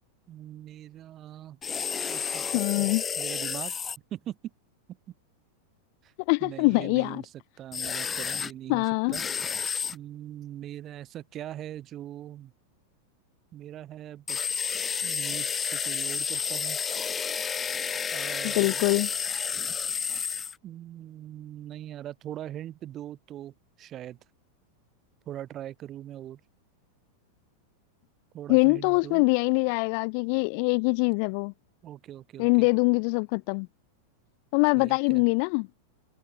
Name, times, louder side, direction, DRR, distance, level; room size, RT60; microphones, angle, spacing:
voice 1, 0.3-1.6 2.1-2.5 2.8-2.9 3.2-3.7 4.1-4.4 5.1-5.2 6.0-6.1 6.4-7.3 7.6-9.2 9.9-12.5 13.5-14.4 15.0-16.8 18.1-18.8 20.6-24.2 25.3-26.4 28.3-29.2 31.8-32.7 34.7-35.2, right 12 dB, 30° right, 5.4 m, -41 dB
sound 1, 1.6-4.0 7.7-8.5 9.1-9.9 14.3-20.5, left 6 dB, 20° left, 2.1 m, -31 dB
voice 2, 2.5-3.0 6.3-7.2 8.7-9.2 18.4-19.1 28.5-31.5 32.4-33.7 34.5-35.7, left 39 dB, 45° left, 0.3 m, -23 dB
figure-of-eight pair, 90°, 0 cm